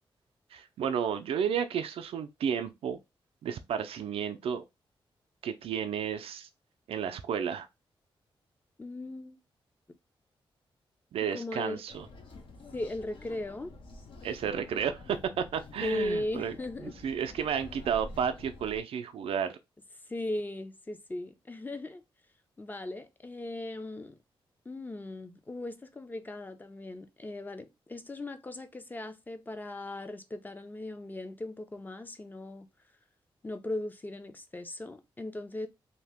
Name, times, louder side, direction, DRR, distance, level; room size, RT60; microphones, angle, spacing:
voice 1, 0.5-3.0 3.4-4.6 5.4-6.5 6.9-7.7 11.1-12.1 14.2-16.5 16.8-19.6, right 7 dB, 85° right, 0.4 m, -32 dB
voice 2, 8.8-9.4 11.3-11.8 12.7-13.7 15.8-16.9 20.1-22.0 22.6-24.2 24.7-32.7 33.4-35.7, left 1 dB, 20° left, 0.5 m, -38 dB
sound 1, 11.9-18.8, left 2 dB, 65° left, 0.6 m, -48 dB
2.8 x 2.1 x 3.4 m
cardioid pair, 90°, 10 cm